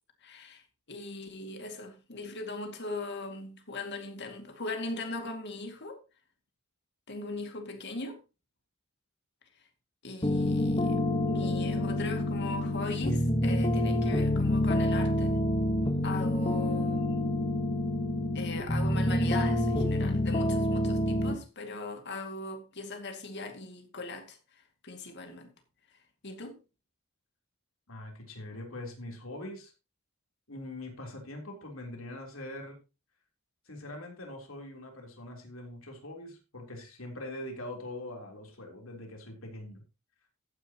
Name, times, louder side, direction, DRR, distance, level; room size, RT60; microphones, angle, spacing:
voice 1, 0.2-6.0 7.1-8.2 10.0-15.4 16.0-17.2 18.3-24.4 24.8-25.5 26.2-26.6, left 3 dB, 55° left, 2.3 m, -39 dB
sound 1, 10.2-21.4, left 1 dB, 25° left, 1.3 m, -27 dB
voice 2, 27.9-29.7 30.5-32.8 33.7-39.8, left 1 dB, 70° left, 3.7 m, -42 dB
14.0 x 9.7 x 3.0 m
head